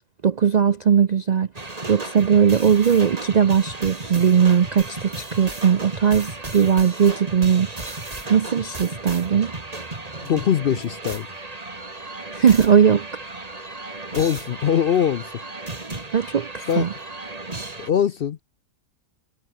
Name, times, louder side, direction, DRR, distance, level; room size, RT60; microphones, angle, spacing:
voice 1, 0.2-1.5 1.9-7.7 8.3-9.5 12.3-13.1 16.1-16.9, right 7 dB, 55° right, 0.4 m, -18 dB
sound 1, 1.6-17.9, right 2 dB, 30° right, 2.3 m, -35 dB
voice 2, 10.2-11.3 14.1-15.3 16.7-16.9 17.8-18.4, left 8 dB, 55° left, 0.7 m, -22 dB
omnidirectional pair, 1.4 m